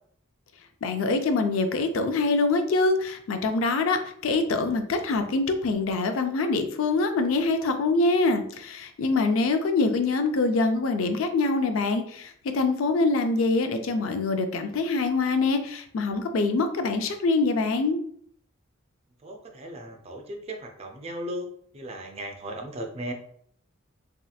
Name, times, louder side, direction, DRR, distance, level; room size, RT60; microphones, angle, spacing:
voice 1, 0.8-18.0, left 3 dB, 80° left, 7 dB, 0.4 m, -24 dB
voice 2, 19.2-21.5 21.7-23.1, right 1 dB, 30° right, 3 dB, 0.4 m, -36 dB
3.2 x 2.8 x 2.3 m, 0.64 s
head